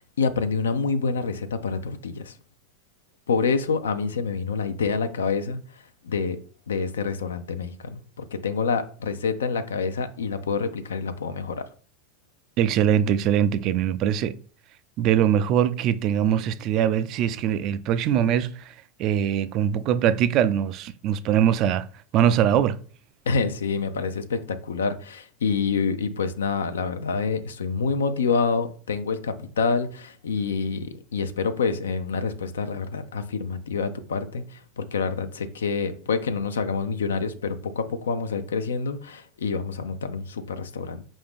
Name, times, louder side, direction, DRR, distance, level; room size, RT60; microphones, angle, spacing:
voice 1, 0.0-2.3 3.3-5.6 6.0-6.4 6.7-8.0 8.3-11.6 23.3-41.0, left 5 dB, 85° left, 0.4 m, -27 dB
voice 2, 12.6-14.4 15.0-21.9 22.1-22.8, right 9 dB, 50° right, 0.3 m, -22 dB
4.8 x 2.5 x 3.5 m
hypercardioid pair, 90°, 0 cm